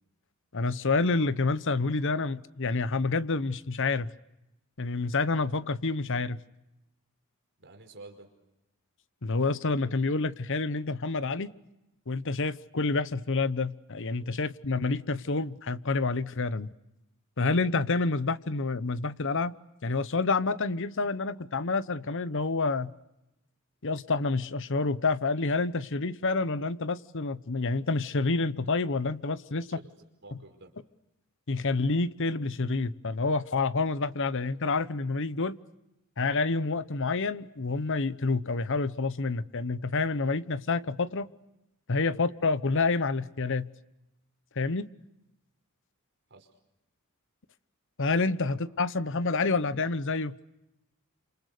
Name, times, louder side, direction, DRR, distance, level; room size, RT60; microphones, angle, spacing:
voice 1, 0.5-4.1 4.8-6.4 9.2-11.5 12.1-16.7 17.4-19.6 19.8-22.9 23.8-29.6 30.3-30.4 31.5-35.6 36.2-41.3 41.9-43.7 44.6-44.9 48.0-50.3, left 3 dB, 60° left, 15 dB, 1.0 m, -28 dB
voice 2, 7.6-8.3 14.4-14.5 29.6-30.7 42.1-42.3 46.3-46.5 48.5-48.6, right 2 dB, 55° right, 4 dB, 5.0 m, -51 dB
29.5 x 27.0 x 6.7 m, 0.91 s
head